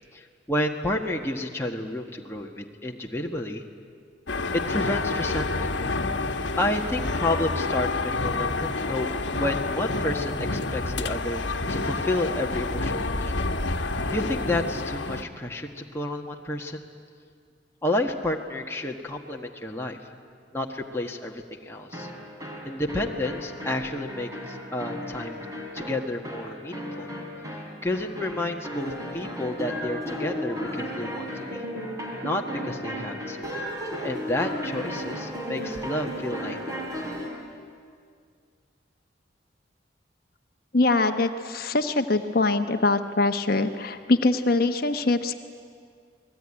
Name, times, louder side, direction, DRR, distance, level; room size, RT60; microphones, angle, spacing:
voice 1, 0.1-3.6 4.5-5.7 6.6-9.1 9.4-11.4 11.7-13.4 14.1-16.9 17.8-20.0 20.5-22.1 22.6-25.4 25.7-27.1 27.5-31.3 31.5-31.6 32.2-33.5 34.0-36.8, left 1 dB, 15° left, 0 dB, 1.5 m, -30 dB
sound 1, 4.3-15.2, left 3 dB, 75° left, 1.3 m, -28 dB
sound 2, 21.9-37.4, equal, 20° right, 4.4 m, -35 dB
voice 2, 40.7-45.3, left 2 dB, 50° left, 7 dB, 1.1 m, -23 dB
28.5 x 20.0 x 9.9 m, 2.1 s
head